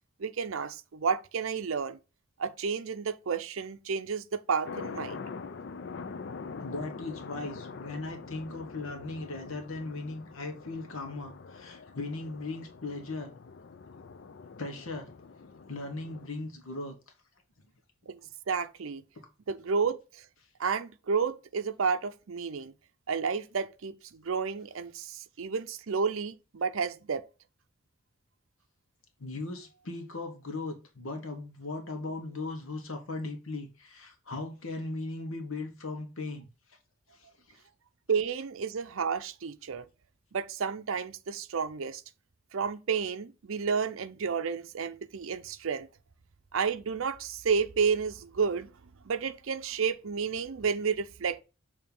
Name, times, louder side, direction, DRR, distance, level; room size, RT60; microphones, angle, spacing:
voice 1, 0.2-2.0 2.4-5.2 18.1-18.2 18.5-19.0 19.5-20.2 20.6-22.7 23.1-27.3 38.1-39.8 40.3-42.0 42.5-45.9 46.5-48.7 49.0-51.4, right 5 dB, 70° right, 0.5 m, -31 dB
sound 1, 4.6-16.3, left 5 dB, 50° left, 0.4 m, -44 dB
voice 2, 6.6-13.3 14.6-15.1 15.7-17.0 19.2-19.3 29.2-36.5 37.1-37.6, left 2 dB, 70° left, 1.1 m, -38 dB
6.9 x 2.8 x 5.3 m
head